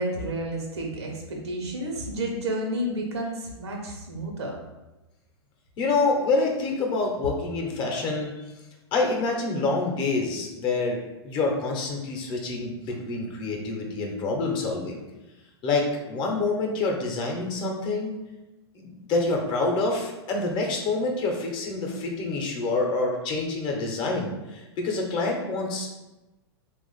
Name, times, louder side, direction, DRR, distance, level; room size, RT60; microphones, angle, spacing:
voice 1, 0.0-4.6, right 1 dB, 80° right, 0 dB, 0.9 m, -31 dB
voice 2, 5.8-8.5 8.9-15.0 15.6-18.1 18.7-25.9, left 3 dB, 35° left, 1 dB, 0.8 m, -27 dB
3.0 x 2.4 x 4.0 m, 1.0 s
hypercardioid pair, 115°, 14 cm